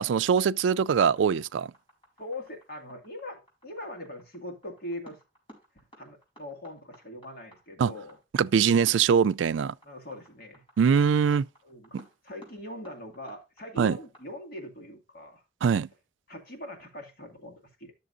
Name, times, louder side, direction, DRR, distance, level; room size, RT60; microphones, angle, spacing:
voice 1, 0.0-1.7 7.8-7.9 8.3-9.7 10.8-11.5 11.9-12.0 13.8-13.9 15.6-15.9, right 7 dB, 85° right, 0.3 m, -23 dB
sound 1, 0.6-14.2, equal, 30° left, 4.2 m, -55 dB
voice 2, 2.2-5.2 6.0-8.2 9.8-10.6 11.6-12.0 12.2-15.4 16.3-17.9, left 1 dB, 55° left, 2.0 m, -41 dB
12.0 x 6.7 x 2.5 m
head